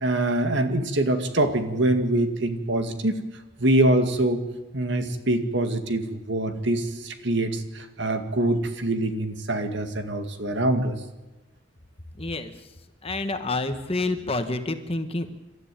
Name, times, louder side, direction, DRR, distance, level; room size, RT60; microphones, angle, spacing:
voice 1, 0.0-3.1 3.6-4.4 4.7-11.0, right 1 dB, 60° right, 7 dB, 2.0 m, -24 dB
voice 2, 12.2-12.5 13.0-15.3, left 2 dB, 30° left, 8 dB, 1.4 m, -28 dB
28.0 x 13.5 x 9.0 m, 1.1 s
head